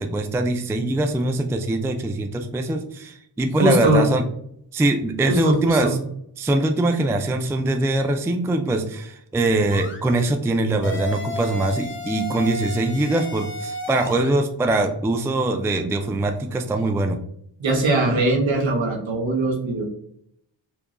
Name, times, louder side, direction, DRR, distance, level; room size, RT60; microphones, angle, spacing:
voice 1, 0.0-4.2 4.7-6.0 6.4-17.2, right 2 dB, 5° right, 6 dB, 0.3 m, -22 dB
voice 2, 3.6-4.1 5.3-6.0 17.6-19.9, right 2 dB, 65° right, 1 dB, 1.3 m, -21 dB
sound 1, 9.7-10.0 10.8-14.3, equal, 25° left, 0.9 m, -32 dB
4.6 x 2.8 x 2.5 m, 0.70 s
cardioid pair, 65°, 49 cm